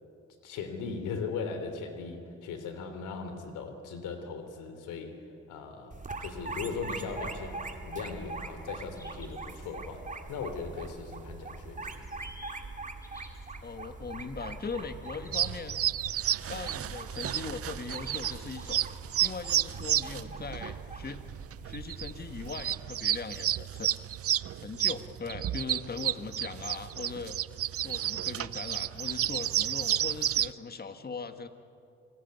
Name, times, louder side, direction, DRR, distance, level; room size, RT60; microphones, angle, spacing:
voice 1, 0.4-5.1 5.5-10.0 10.3-12.0, left 5 dB, 90° left, 7 dB, 3.3 m, -38 dB
sound 1, 5.9-22.7, right 3 dB, 25° right, 2.3 m, -42 dB
sound 2, 7.8-8.3 9.0-9.7 11.8-12.5 13.0-13.5 15.0-15.7 16.5-17.1 18.0-18.9, equal, 10° left, 4.5 m, -52 dB
voice 2, 13.6-15.8 16.5-18.8 19.2-21.2 21.6-23.9 24.6-27.4 27.8-31.5, left 4 dB, 30° left, 8 dB, 1.7 m, -40 dB
sound 3, 15.3-30.5, right 12 dB, 50° right, 0.5 m, -31 dB
27.5 x 19.0 x 9.5 m, 2.6 s
cardioid pair, 90°, 30 cm